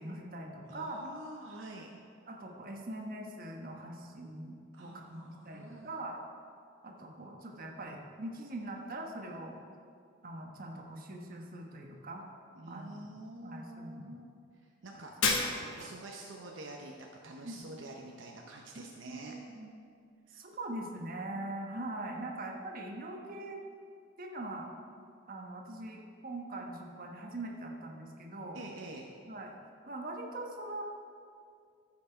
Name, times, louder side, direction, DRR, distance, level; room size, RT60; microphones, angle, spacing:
voice 1, 0.0-1.0 1.9-2.0 2.3-6.2 6.8-9.6 10.2-12.2 12.7-12.9 13.4-14.4 15.8-15.9 17.4-17.6 18.7-19.7 20.3-23.6 24.2-24.7 25.3-28.6 29.2-29.5 29.9-30.8, right 1 dB, 45° right, 1 dB, 1.1 m, -42 dB
voice 2, 0.7-1.9 4.7-6.0 12.6-14.3 14.8-15.1 15.6-19.3 20.3-20.5 28.5-29.1, right 1 dB, 65° right, 0 dB, 0.7 m, -47 dB
Shatter, 15.2-16.0, left 4 dB, 90° left, 1.1 m, -30 dB
14.5 x 5.8 x 4.4 m, 2.3 s
head